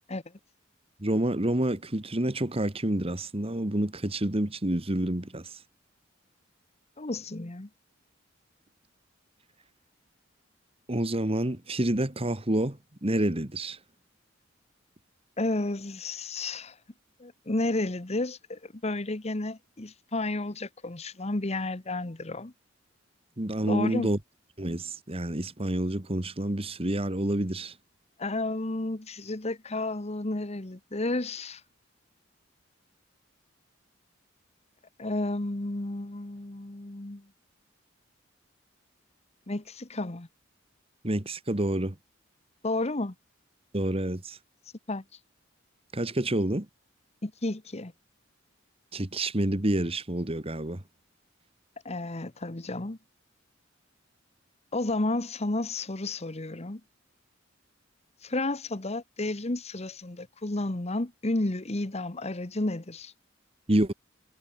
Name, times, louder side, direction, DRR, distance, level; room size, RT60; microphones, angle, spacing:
voice 1, 1.0-5.5 10.9-13.8 23.4-24.2 24.6-27.7 41.0-41.9 43.7-44.4 45.9-46.7 48.9-50.8 63.7-63.9, right 1 dB, 30° right, 1.7 m, -28 dB
voice 2, 7.0-7.7 15.4-16.8 17.2-22.5 23.7-24.1 28.2-31.6 35.0-37.2 39.5-40.3 42.6-43.1 44.9-45.0 47.2-47.9 51.8-53.0 54.7-56.8 58.2-63.1, left 2 dB, 35° left, 1.2 m, -32 dB
head